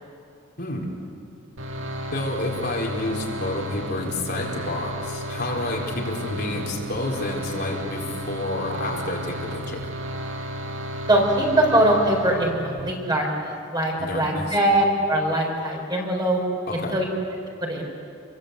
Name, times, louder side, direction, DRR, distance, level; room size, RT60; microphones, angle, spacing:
voice 1, 0.6-0.9 2.1-9.8 14.0-14.6 16.7-16.9, left 1 dB, 55° left, -2 dB, 4.3 m, -29 dB
sound 1, 1.6-12.9, equal, 70° right, 1.9 m, -33 dB
voice 2, 11.1-16.4 16.9-17.1 17.6-17.9, right 1 dB, 20° right, 0 dB, 4.8 m, -22 dB
28.5 x 23.0 x 8.4 m, 2.6 s
head